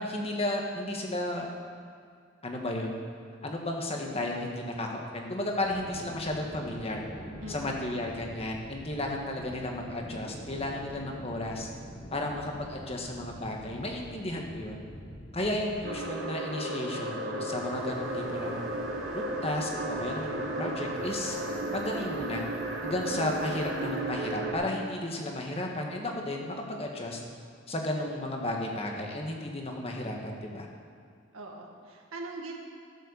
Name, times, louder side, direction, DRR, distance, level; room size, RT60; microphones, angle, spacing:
voice 1, 0.0-1.5 2.4-3.0 3.4-7.0 7.5-11.7 12.1-14.8 15.3-18.6 19.1-21.4 21.7-22.4 22.8-27.2 27.7-30.7, left 1 dB, 30° left, 1 dB, 1.5 m, -33 dB
sound 1, 5.6-16.0, equal, 45° left, 1.6 m, -45 dB
voice 2, 7.4-7.8 31.3-32.6, right 2 dB, 90° right, 1 dB, 1.9 m, -41 dB
sound 2, 15.8-24.5, right 1 dB, 60° right, 1.5 m, -34 dB
sound 3, 17.5-24.3, equal, 5° right, 1.6 m, -49 dB
13.5 x 7.6 x 7.0 m, 2.2 s
head